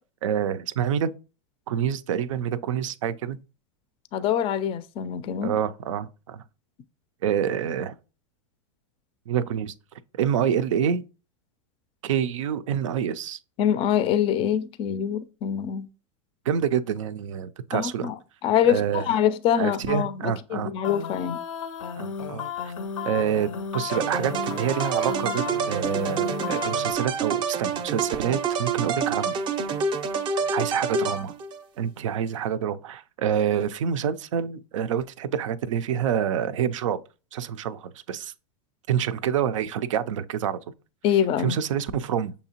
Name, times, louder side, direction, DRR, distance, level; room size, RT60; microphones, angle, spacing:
voice 1, 0.2-1.1 1.7-3.4 5.4-6.4 7.2-7.9 9.3-9.7 10.1-11.0 12.0-13.4 16.5-18.1 18.7-19.1 19.6-20.7 22.0-22.7 23.0-29.3 30.5-31.3 31.8-37.0 37.3-38.3 38.9-40.6 41.4-42.3, right 8 dB, 85° right, 0.4 m, -27 dB
voice 2, 4.1-5.5 13.6-15.9 17.7-18.2 18.4-21.4 41.0-41.6, left 9 dB, 35° left, 0.4 m, -24 dB
sound 1, 20.8-26.9, left 6 dB, 85° left, 0.6 m, -34 dB
sound 2, 23.9-31.6, right 5 dB, 30° right, 0.5 m, -28 dB
6.5 x 2.8 x 2.8 m
hypercardioid pair, 115°, 16 cm